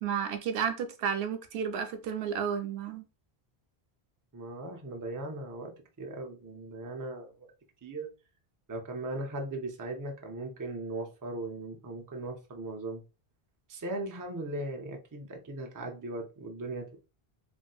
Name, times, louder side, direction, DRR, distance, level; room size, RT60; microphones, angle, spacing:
voice 1, 0.0-3.0, right 7 dB, 85° right, 0.8 m, -32 dB
voice 2, 4.3-5.7 6.0-7.5 7.8-8.1 8.7-13.0 13.7-17.0, right 2 dB, 30° right, 0.4 m, -38 dB
3.1 x 2.6 x 2.2 m
omnidirectional pair, 1.0 m